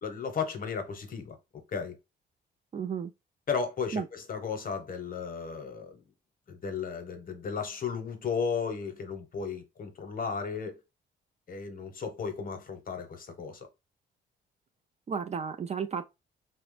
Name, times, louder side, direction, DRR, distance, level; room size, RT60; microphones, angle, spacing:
voice 1, 0.0-2.0 3.5-5.9 6.5-10.8 11.5-13.7, left 5 dB, 45° left, 0.9 m, -34 dB
voice 2, 2.7-3.1 3.9-4.1 15.1-16.1, right 6 dB, 35° right, 0.4 m, -33 dB
2.9 x 2.0 x 3.1 m
cardioid pair, 90°, 20 cm